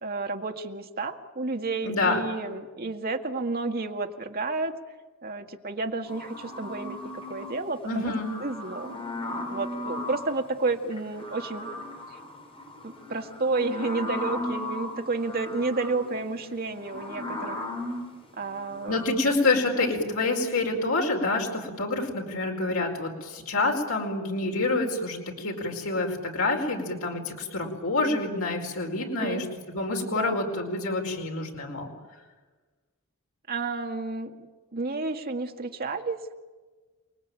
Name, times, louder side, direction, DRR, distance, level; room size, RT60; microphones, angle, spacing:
voice 1, 0.0-4.8 5.2-8.1 8.4-9.1 9.5-11.7 12.8-17.7 18.4-19.0 19.8-19.9 29.0-29.5 30.1-30.4 33.5-34.3 34.7-36.3, right 3 dB, 45° right, 4 dB, 1.9 m, -31 dB
voice 2, 1.8-2.2 7.8-8.3 18.9-31.9, left 2 dB, 80° left, 1 dB, 4.7 m, -27 dB
sound 1, 6.1-7.6 8.0-10.4 10.9-19.1, left 1 dB, 25° left, 4.5 m, -37 dB
29.0 x 20.5 x 9.0 m, 1.3 s
head